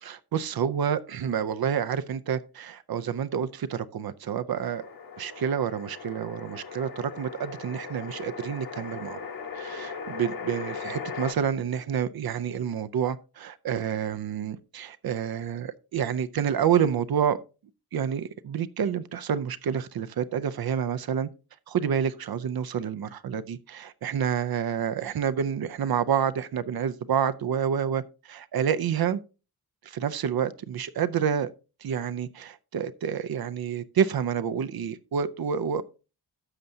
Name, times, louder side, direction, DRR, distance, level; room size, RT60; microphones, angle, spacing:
voice 1, 0.0-4.8 5.2-9.3 9.5-17.4 17.9-21.3 21.7-29.2 29.8-31.5 31.8-35.8, right 8 dB, 70° right, 0.6 m, -28 dB
sound 1, 4.7-11.3, left 5 dB, 65° left, 1.3 m, -38 dB
12.5 x 7.7 x 2.7 m
wide cardioid pair, 175°, 38 cm